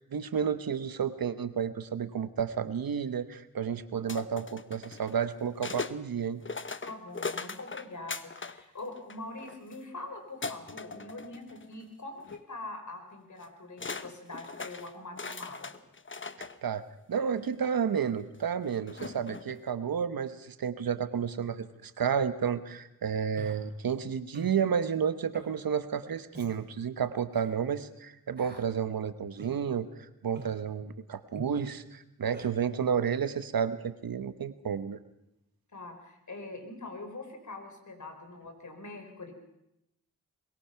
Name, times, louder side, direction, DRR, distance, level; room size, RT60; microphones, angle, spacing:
voice 1, 0.1-6.4 16.4-29.9 30.2-35.0, right 7 dB, 90° right, 12 dB, 1.2 m, -31 dB
sound 1, 4.1-6.0 6.4-8.6 8.9-9.8 10.4-11.8 12.2-12.4 13.4-13.5 13.8-16.6 17.4-17.5 18.9-19.6, left 4 dB, 35° left, 1.1 m, -39 dB
voice 2, 6.8-15.7 35.7-39.3, left 2 dB, 55° left, 5 dB, 4.7 m, -43 dB
Human voice, 23.4-23.6 24.3-24.6 25.3-25.5 26.3-26.5 27.3-27.5 28.4-28.7 29.4-29.6 30.4-30.6 31.4-31.5 32.3-32.5, right 2 dB, 30° right, 4.9 m, -44 dB
22.5 x 21.5 x 5.9 m, 0.84 s
cardioid pair, 55°, 34 cm